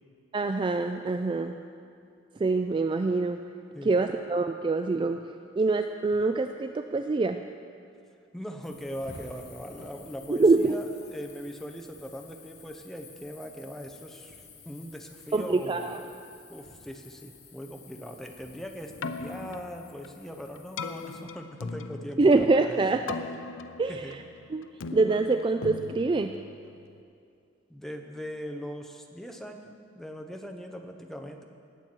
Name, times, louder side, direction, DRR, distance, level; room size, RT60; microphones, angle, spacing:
voice 1, 0.3-1.6 2.4-3.4 3.8-5.2 5.6-7.4 10.3-10.8 15.3-16.0 22.2-23.0 23.8-24.2 24.5-26.4, right 3 dB, 25° right, 7 dB, 0.3 m, -25 dB
voice 2, 3.7-4.2 8.3-16.2 16.5-22.8 23.9-24.2 27.7-31.4, equal, ahead, 4 dB, 0.8 m, -40 dB
sound 1, 8.6-21.2, left 4 dB, 60° left, 1.8 m, -51 dB
Keyboard (musical), 18.8-27.0, left 4 dB, 90° left, 0.5 m, -40 dB
19.0 x 7.7 x 4.5 m, 2.4 s
head